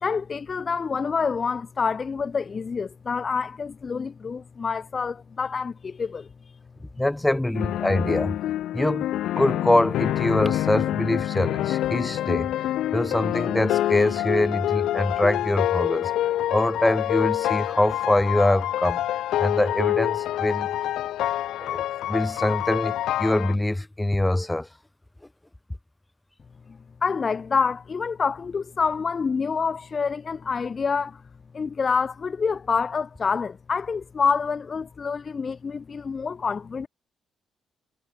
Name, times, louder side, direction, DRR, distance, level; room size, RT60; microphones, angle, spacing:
voice 1, 0.0-6.3 27.0-31.2 31.5-36.9, left 5 dB, 40° left, 1.8 m, -27 dB
voice 2, 7.0-8.4 8.7-9.1 9.3-12.5 12.9-16.1 16.5-19.0 19.4-20.7 21.6-24.7, left 1 dB, 10° left, 3.5 m, -24 dB
sound 1, 7.5-23.6, left 13 dB, 80° left, 6.1 m, -26 dB
cardioid pair, 90°, 0 cm